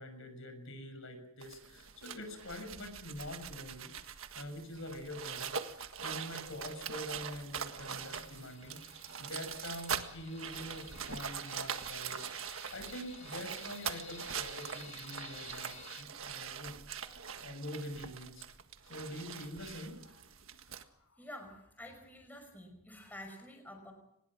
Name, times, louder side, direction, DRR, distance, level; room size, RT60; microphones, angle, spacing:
voice 1, 0.0-3.9 4.3-18.5 18.8-20.3 20.6-21.2, left 1 dB, 65° left, 7 dB, 6.8 m, -45 dB
sound 1, 1.4-20.8, right 7 dB, 65° right, 1.7 m, -43 dB
sound 2, 8.0-16.0, left 5 dB, 30° left, 1.8 m, -54 dB
voice 2, 21.2-23.9, left 1 dB, 10° left, 4 dB, 5.4 m, -49 dB
25.0 x 20.5 x 6.2 m, 0.78 s
head